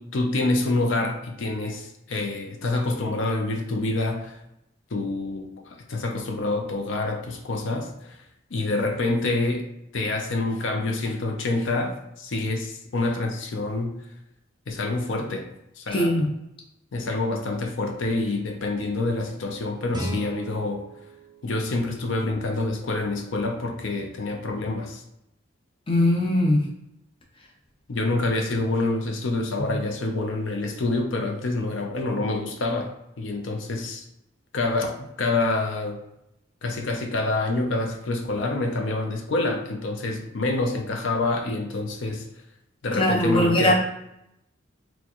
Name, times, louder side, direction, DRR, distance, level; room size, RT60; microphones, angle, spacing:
voice 1, 0.0-4.4 4.9-8.2 8.5-9.7 9.9-13.9 14.7-15.5 15.8-16.3 16.9-20.8 21.4-25.0 27.9-34.0 34.5-36.0 36.6-42.3 42.8-43.7, left 2 dB, 70° left, 3 dB, 0.6 m, -27 dB
voice 2, 15.9-16.2 25.9-26.6 29.6-29.7 43.0-43.7, left 1 dB, 25° left, -1 dB, 0.6 m, -20 dB
Guitar, 19.9-22.7, equal, 20° right, 0.6 m, -37 dB
4.3 x 2.2 x 2.9 m, 0.82 s
head